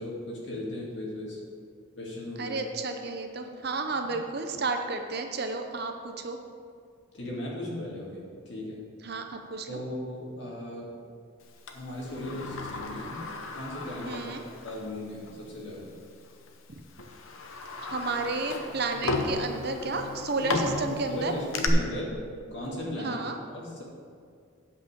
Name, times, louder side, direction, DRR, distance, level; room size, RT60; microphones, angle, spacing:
voice 1, 0.0-1.4 2.0-2.6 7.1-8.8 9.7-10.9 11.7-13.2 13.5-14.1 14.5-15.9 20.3-22.2 22.5-23.2 23.5-23.8, left 1 dB, 55° left, -4 dB, 2.3 m, -36 dB
voice 2, 2.4-6.4 9.0-9.8 14.1-14.4 17.8-21.3 23.0-23.3, right 3 dB, 50° right, 5 dB, 0.7 m, -32 dB
Sliding door, 11.7-14.9 15.3-15.4 16.3-16.5 17.0-21.7, left 3 dB, 75° left, 0.9 m, -35 dB
8.5 x 5.5 x 6.8 m, 2.2 s
head